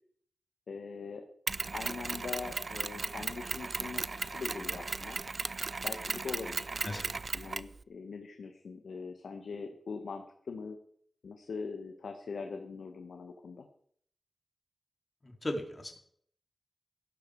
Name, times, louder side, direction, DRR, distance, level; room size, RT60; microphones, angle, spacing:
voice 1, 0.7-1.3 1.7-5.2 5.8-10.8 11.2-13.7, left 4 dB, 80° left, 5 dB, 1.5 m, -42 dB
Mechanisms, 1.5-7.8, right 3 dB, 45° right, 0.5 m, -36 dB
voice 2, 15.2-16.0, left 1 dB, 30° left, 3 dB, 3.0 m, -37 dB
16.5 x 12.5 x 4.8 m, 0.62 s
wide cardioid pair, 100°, 0 cm